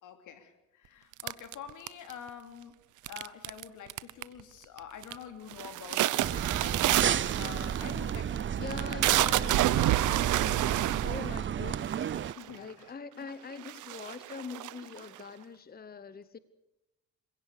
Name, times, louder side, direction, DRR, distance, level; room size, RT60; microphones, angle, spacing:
voice 1, 0.0-2.8 3.1-9.0 10.1-10.2 11.0-11.4 12.2-13.0, left 8 dB, 80° left, 7 dB, 3.2 m, -47 dB
sound 1, 1.2-2.3 3.1-3.6 3.9-4.4 4.8-5.2 5.5-12.6 13.2-13.3 13.6-15.2, right 15 dB, 80° right, 0.9 m, -29 dB
sound 2, 6.2-12.3, right 9 dB, 40° right, 0.6 m, -32 dB
voice 2, 8.6-12.0 12.5-16.4, left 5 dB, 30° left, 14 dB, 1.1 m, -43 dB
26.0 x 17.0 x 6.8 m, 0.97 s
cardioid pair, 90°, 30 cm